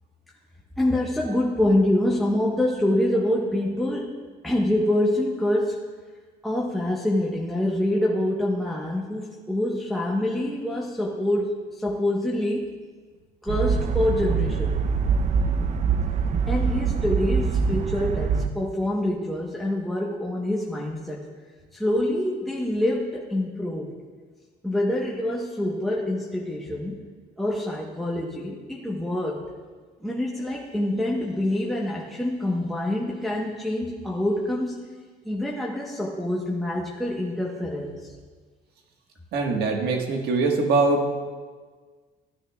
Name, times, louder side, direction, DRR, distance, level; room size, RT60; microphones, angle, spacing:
voice 1, 0.8-4.2 4.4-5.8 6.4-12.7 13.4-14.8 16.5-21.3 21.7-23.9 24.6-27.0 27.4-29.5 30.0-34.8 35.2-38.1, left 1 dB, ahead, -4 dB, 1.1 m, -26 dB
sound 1, 13.5-18.5, right 5 dB, 45° right, 0.5 m, -24 dB
voice 2, 39.3-41.2, right 3 dB, 70° right, 2 dB, 1.5 m, -23 dB
13.5 x 9.5 x 2.3 m, 1.5 s
cardioid pair, 110°, 17 cm